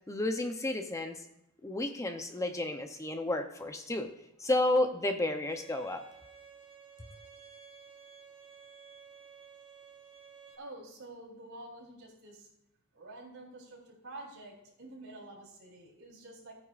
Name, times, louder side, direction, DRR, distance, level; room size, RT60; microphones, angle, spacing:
voice 1, 0.1-1.2 1.6-4.1 4.4-6.0, left 1 dB, 15° left, 6 dB, 0.6 m, -31 dB
Bowed string instrument, 5.5-10.5, right 6 dB, 25° right, 1.3 m, -54 dB
voice 2, 10.6-12.5 12.9-16.5, right 2 dB, 70° right, -3 dB, 3.7 m, -48 dB
15.5 x 9.5 x 2.4 m, 0.82 s
head